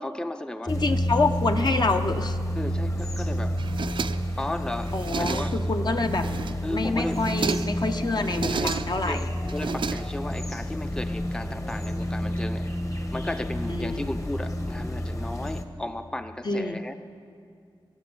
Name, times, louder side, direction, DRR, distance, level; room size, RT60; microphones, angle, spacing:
voice 1, 0.0-0.8 2.6-3.6 4.4-5.6 6.6-7.2 8.5-8.7 9.0-12.7 13.1-16.9, left 1 dB, 10° left, 9 dB, 0.6 m, -34 dB
voice 2, 0.7-2.4 4.9-6.3 6.7-9.3 13.7-14.1 16.4-16.8, left 3 dB, 55° left, 6 dB, 0.9 m, -27 dB
sound 1, 0.7-15.6, equal, 35° left, 1.4 m, -30 dB
sound 2, 3.6-4.5 4.8-5.7 6.1-6.7 7.1-7.8 8.2-9.1 9.5-10.5, right 5 dB, 70° right, 0.4 m, -32 dB
22.5 x 8.7 x 7.0 m, 2.4 s
cardioid pair, 55°, 9 cm